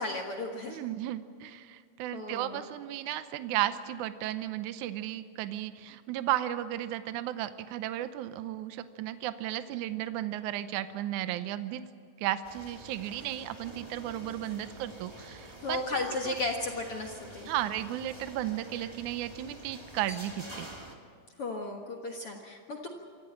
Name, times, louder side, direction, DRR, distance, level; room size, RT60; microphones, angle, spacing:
voice 1, 0.0-0.8 2.1-2.6 15.6-17.5 21.4-22.9, left 2 dB, 55° left, 1 dB, 1.6 m, -34 dB
voice 2, 0.7-11.8 12.2-16.3 17.5-20.7, right 13 dB, 85° right, 11 dB, 1.7 m, -34 dB
sound 1, 12.4-20.9, right 1 dB, 10° right, 1.3 m, -48 dB
26.0 x 14.5 x 8.8 m, 2.2 s
omnidirectional pair, 4.5 m